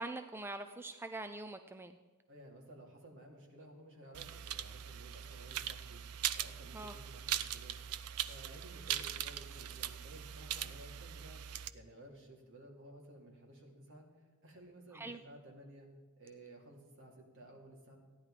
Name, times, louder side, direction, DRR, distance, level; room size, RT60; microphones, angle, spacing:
voice 1, 0.0-1.9 6.7-6.9 14.9-15.2, right 2 dB, 10° right, 8 dB, 0.4 m, -43 dB
voice 2, 2.3-6.0 6.3-7.8 8.3-11.4 11.7-15.9 16.2-18.0, right 1 dB, 60° right, 0 dB, 2.9 m, -55 dB
sound 1, 4.1-11.7, right 11 dB, 85° right, 0.5 m, -41 dB
14.5 x 10.5 x 5.0 m, 1.3 s
head